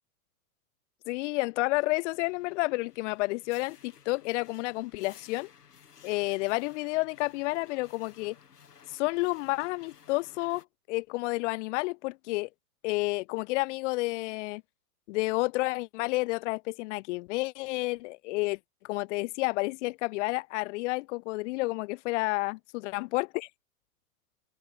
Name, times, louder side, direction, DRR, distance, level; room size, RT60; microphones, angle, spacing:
voice 1, 1.1-5.5 6.0-8.3 8.9-12.5 12.8-14.6 15.1-18.6 18.8-22.6 22.9-23.5, left 23 dB, 50° left, 1.6 m, -30 dB
sound 1, 2.0-10.6, left 7 dB, 85° left, 6.3 m, -56 dB
open air
hypercardioid pair, 115°, 45 cm